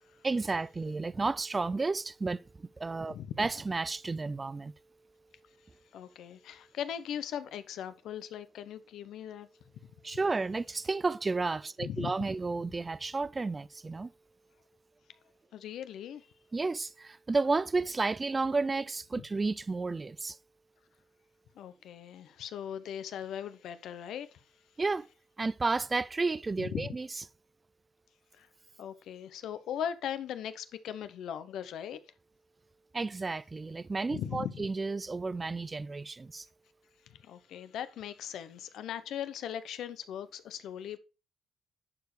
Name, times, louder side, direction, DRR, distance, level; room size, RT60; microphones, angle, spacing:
voice 1, 0.2-4.7 10.0-14.1 16.5-20.4 24.8-25.1 25.4-27.1 32.9-36.5, right 3 dB, 25° right, 0.3 m, -32 dB
voice 2, 5.9-9.5 11.8-12.1 15.5-16.3 19.2-19.3 21.6-24.4 26.6-26.9 28.4-28.5 28.8-32.0 34.1-34.6 37.1-41.0, left 9 dB, 80° left, 0.7 m, -39 dB
10.5 x 4.9 x 3.2 m
cardioid pair, 90°, 0 cm